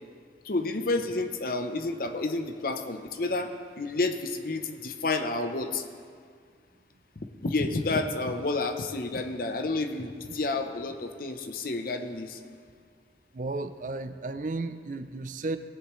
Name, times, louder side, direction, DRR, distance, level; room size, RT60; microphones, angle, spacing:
voice 1, 0.4-5.8 7.4-12.4, left 2 dB, 50° left, 7 dB, 0.7 m, -30 dB
voice 2, 13.3-15.6, right 3 dB, 45° right, 10 dB, 0.5 m, -33 dB
19.0 x 7.0 x 3.1 m, 2.1 s
head